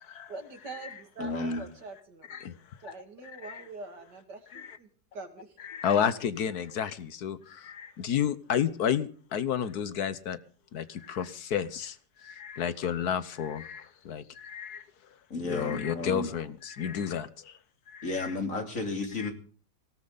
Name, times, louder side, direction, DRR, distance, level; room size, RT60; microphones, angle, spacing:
voice 1, 0.3-2.3 2.8-5.5, right 3 dB, 90° right, 6 dB, 3.0 m, -44 dB
voice 2, 1.2-1.6 15.3-16.3 18.0-19.3, left 3 dB, 50° left, 4 dB, 3.4 m, -32 dB
voice 3, 3.2-3.6 4.5-4.8 5.6-10.4 10.7-12.0 12.2-14.8 15.4-17.5 17.9-18.3 19.2-19.3, left 8 dB, 70° left, 15 dB, 1.4 m, -31 dB
18.5 x 17.5 x 4.0 m, 0.42 s
omnidirectional pair, 1.8 m